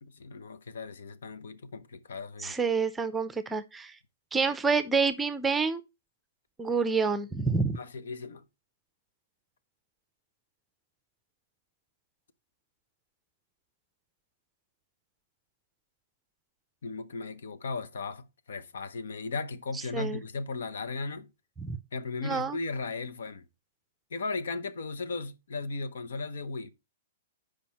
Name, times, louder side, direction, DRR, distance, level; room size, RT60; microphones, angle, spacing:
voice 1, 0.0-2.6 7.8-8.4 16.8-21.3 21.9-23.4 24.1-26.7, left 3 dB, 85° left, 0.9 m, -36 dB
voice 2, 2.4-3.9 4.3-5.8 6.6-7.8 19.9-20.2 21.6-21.8 22.2-22.6, right 4 dB, 10° right, 0.5 m, -28 dB
7.5 x 5.1 x 4.2 m
hypercardioid pair, 155°, 0 cm